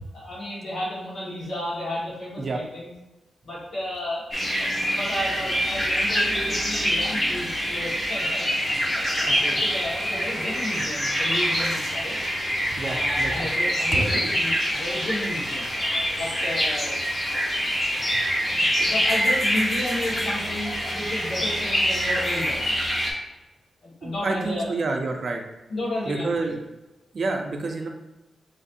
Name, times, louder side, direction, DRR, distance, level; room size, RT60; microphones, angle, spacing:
voice 1, 0.1-2.9 3.4-4.2 4.6-12.3 12.8-15.7 16.1-17.0 17.3-17.4 18.0-22.6 22.9-23.0 23.8-24.7 25.7-26.5, left 1 dB, 70° left, -8 dB, 1.5 m, -33 dB
sound 1, 4.3-23.1, equal, 25° left, 0.9 m, -25 dB
voice 2, 9.2-9.6 12.8-13.5 13.9-14.3 24.0-25.4 26.1-26.6 27.1-27.9, right 3 dB, 45° right, 3 dB, 0.5 m, -28 dB
4.1 x 3.1 x 2.6 m, 1.0 s
wide cardioid pair, 170°, 0 cm